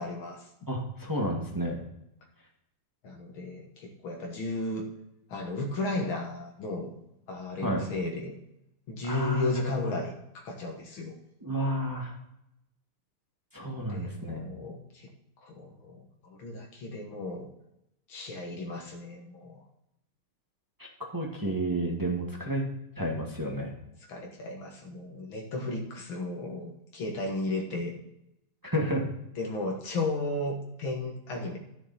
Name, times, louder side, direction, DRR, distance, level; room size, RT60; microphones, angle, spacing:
voice 1, 0.0-0.7 3.0-4.9 5.3-7.0 7.3-8.4 8.9-11.2 13.6-15.1 15.4-17.5 18.1-19.6 24.0-28.0 29.4-31.6, left 2 dB, 75° left, 1 dB, 2.1 m, -34 dB
voice 2, 0.7-1.8 7.6-7.8 9.1-9.5 9.8-9.9 11.4-12.1 13.5-14.5 20.8-22.7 23.0-23.7 28.6-29.0, right 1 dB, 10° right, -1 dB, 1.4 m, -31 dB
13.0 x 6.6 x 4.1 m, 0.83 s
omnidirectional pair, 2.3 m